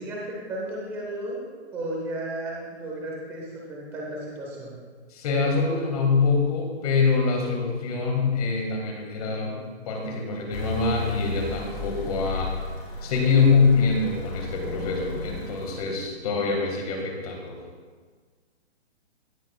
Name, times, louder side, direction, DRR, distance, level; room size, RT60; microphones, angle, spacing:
voice 1, 0.0-4.8, right 1 dB, 5° right, -4 dB, 0.8 m, -34 dB
voice 2, 5.1-12.7 13.0-17.6, left 4 dB, 35° left, 1 dB, 1.7 m, -24 dB
sound 1, 10.5-16.0, left 3 dB, 50° left, 2.7 m, -34 dB
16.5 x 6.0 x 2.2 m, 1.5 s
hypercardioid pair, 170°, 33 cm